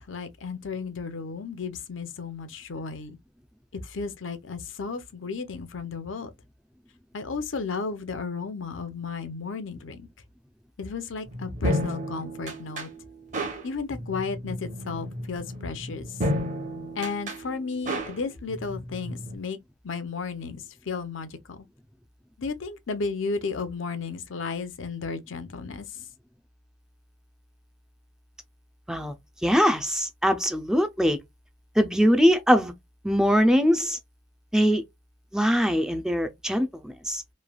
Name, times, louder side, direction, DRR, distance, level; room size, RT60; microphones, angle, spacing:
voice 1, 0.1-3.2 3.7-6.3 7.1-10.1 10.8-12.9 13.6-16.2 17.0-19.6 19.8-21.7 22.4-25.9, left 4 dB, 75° left, 0.6 m, -33 dB
sound 1, 11.3-19.4, equal, 40° right, 0.9 m, -33 dB
voice 2, 29.4-31.2 31.8-32.7 33.0-34.0 34.5-34.8 35.3-37.2, equal, 5° right, 0.4 m, -22 dB
3.1 x 2.2 x 2.3 m
head